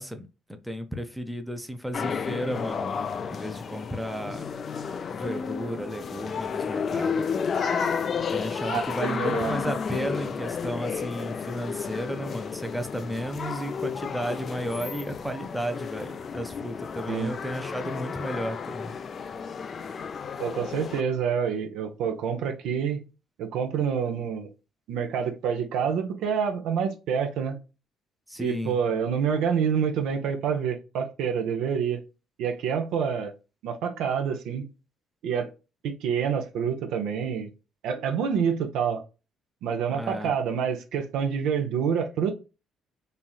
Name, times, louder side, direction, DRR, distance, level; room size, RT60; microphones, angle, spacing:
voice 1, 0.0-3.0 3.3-4.4 5.1-7.2 8.3-18.9 28.3-28.8 39.9-40.3, equal, ahead, 0.6 m, -33 dB
sound 1, 1.9-21.0, left 6 dB, 50° left, 0.3 m, -32 dB
voice 2, 8.7-9.5 17.1-17.3 20.4-23.0 23.4-24.5 24.9-27.6 28.4-32.0 32.4-33.3 33.6-34.6 35.2-35.5 35.8-37.5 37.8-39.0 39.6-42.3, right 7 dB, 70° right, 0.5 m, -27 dB
3.1 x 2.6 x 2.3 m
hypercardioid pair, 55°, 0 cm